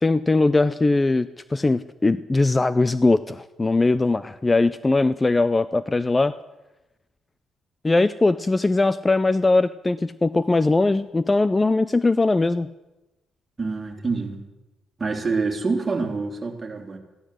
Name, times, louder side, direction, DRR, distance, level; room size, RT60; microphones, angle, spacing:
voice 1, 0.0-6.3 7.8-12.7, left 2 dB, 20° left, 15 dB, 0.5 m, -20 dB
voice 2, 13.6-14.4 15.0-17.0, right 4 dB, 30° right, 2 dB, 3.2 m, -26 dB
15.0 x 11.5 x 7.7 m, 1.0 s
cardioid pair, 90°, 0 cm